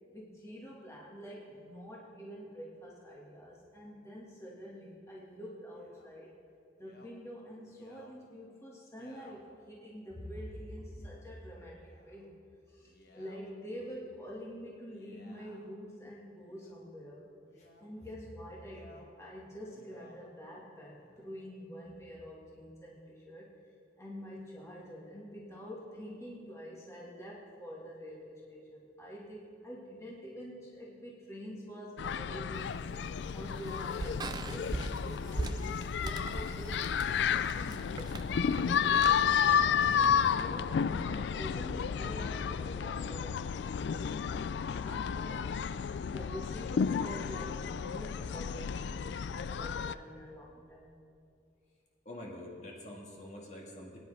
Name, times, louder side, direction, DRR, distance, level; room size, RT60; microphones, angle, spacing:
voice 1, 0.1-6.3 6.8-12.4 12.7-17.2 17.8-23.5 24.0-32.7 33.3-38.0 38.4-51.0, equal, 15° left, -5 dB, 1.7 m, -47 dB
Male speech man speaking, 5.7-6.1 6.8-7.1 7.6-8.1 8.9-9.4 10.1-10.4 10.9-11.3 11.7-12.3 12.8-13.4 14.8-15.7 16.4-16.8 17.5-17.9 18.6-19.1 19.5-20.2 20.9-21.4, left 2 dB, 60° left, 1.4 m, -60 dB
sound 1, 32.0-49.9, left 7 dB, 75° left, 0.3 m, -32 dB
sound 2, 32.5-39.2, right 2 dB, 25° right, 0.4 m, -41 dB
voice 2, 52.1-54.0, left 1 dB, 40° left, -2 dB, 1.8 m, -46 dB
21.0 x 9.9 x 3.3 m, 2.5 s
head